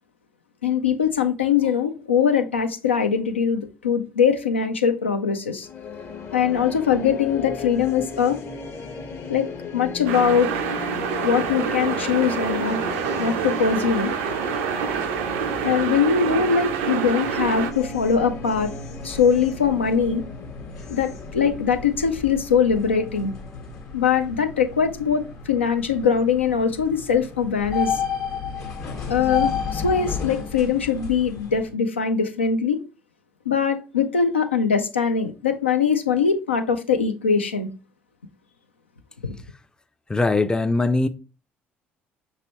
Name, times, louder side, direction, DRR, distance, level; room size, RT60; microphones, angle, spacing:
voice 1, 0.6-5.7 6.3-8.4 9.3-10.5 11.2-12.8 13.2-14.1 15.5-18.7 19.0-20.2 20.9-23.3 23.9-28.0 29.1-32.8 33.5-37.7 39.2-39.3, left 6 dB, 85° left, 0.3 m, -22 dB
sound 1, 5.6-23.8, left 4 dB, 40° left, 0.7 m, -36 dB
sound 2, 10.1-17.7, right 8 dB, 70° right, 0.4 m, -27 dB
sound 3, 17.2-31.7, left 6 dB, 65° left, 1.1 m, -33 dB
voice 2, 40.1-41.1, left 2 dB, 15° left, 0.4 m, -20 dB
5.3 x 2.9 x 2.9 m
figure-of-eight pair, 55°, 6 cm